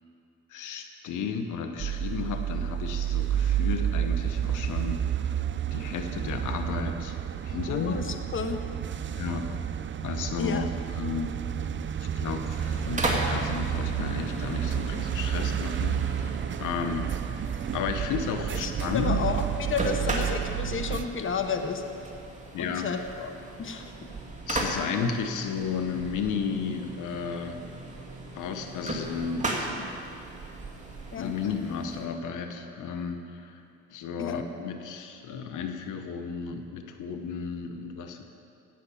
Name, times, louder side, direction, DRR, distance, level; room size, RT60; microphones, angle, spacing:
voice 1, 0.5-5.0 5.7-7.1 7.4-8.0 9.2-9.6 10.0-10.6 11.0-11.3 12.1-17.1 17.7-19.2 22.5-22.9 24.5-27.6 28.3-29.9 31.2-33.5 33.9-38.2, left 6 dB, 80° left, 6 dB, 1.1 m, -33 dB
sound 1, 1.8-21.1, right 9 dB, 40° right, 0.6 m, -30 dB
voice 2, 7.7-8.6 10.4-10.7 18.6-21.8 22.6-23.3 23.6-23.9 31.1-31.4 34.2-34.4, left 5 dB, 40° left, 6 dB, 1.1 m, -32 dB
sound 2, 12.5-32.1, right 2 dB, 25° right, 2.4 m, -36 dB
16.5 x 6.7 x 8.5 m, 2.5 s
cardioid pair, 90°, 30 cm